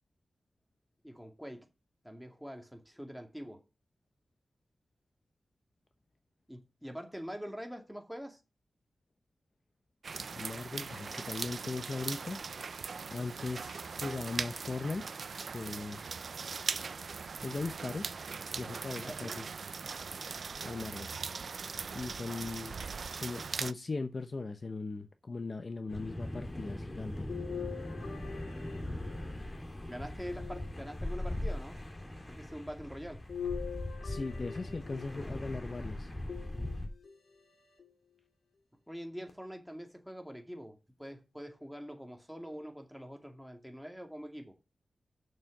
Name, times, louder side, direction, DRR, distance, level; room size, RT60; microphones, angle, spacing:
voice 1, 1.0-1.7 2.0-3.6 6.5-8.4 19.0-19.4 29.9-31.8 32.3-33.2 38.9-44.5, equal, ahead, 2.4 m, -44 dB
sound 1, 10.0-23.7, right 5 dB, 70° right, 0.5 m, -40 dB
voice 2, 10.4-12.4 13.1-15.0 15.5-16.0 17.4-18.2 18.6-19.4 20.6-21.1 21.9-22.7 23.1-27.3 34.0-36.1, left 3 dB, 45° left, 0.8 m, -39 dB
sound 2, 25.9-36.9, left 1 dB, 25° left, 2.9 m, -40 dB
sound 3, 27.3-29.6 30.3-31.3 33.3-35.4 36.3-37.2 37.8-37.9 39.3-39.4, left 7 dB, 80° left, 2.2 m, -43 dB
6.8 x 6.4 x 7.2 m
wide cardioid pair, 100°, 0 cm